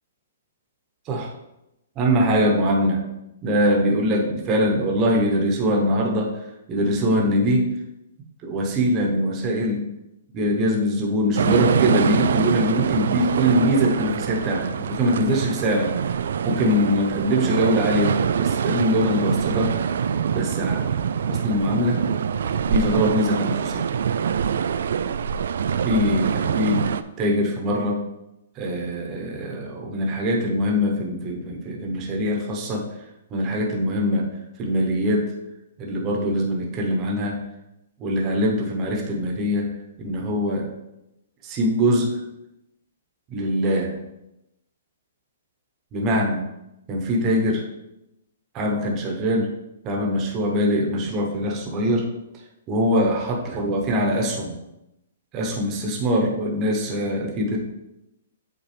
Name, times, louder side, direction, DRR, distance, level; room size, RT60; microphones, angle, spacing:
voice 1, 2.0-3.0 3.4-6.3 6.7-7.7 8.4-9.8 10.3-16.0 16.4-19.9 20.3-21.0 21.3-22.0 22.7-23.9 25.8-26.8 27.2-28.0 28.5-32.9 33.3-35.3 35.8-37.4 38.0-39.7 40.0-40.7 41.4-42.2 43.3-43.9 45.9-46.4 46.9-47.6 48.5-49.5 49.8-52.1 52.7-54.5 55.3-57.6, equal, 20° right, -1 dB, 1.1 m, -23 dB
sound 1, 11.4-27.0, right 7 dB, 65° right, 0.3 m, -24 dB
8.4 x 4.0 x 3.4 m, 0.89 s
hypercardioid pair, 165°, 0 cm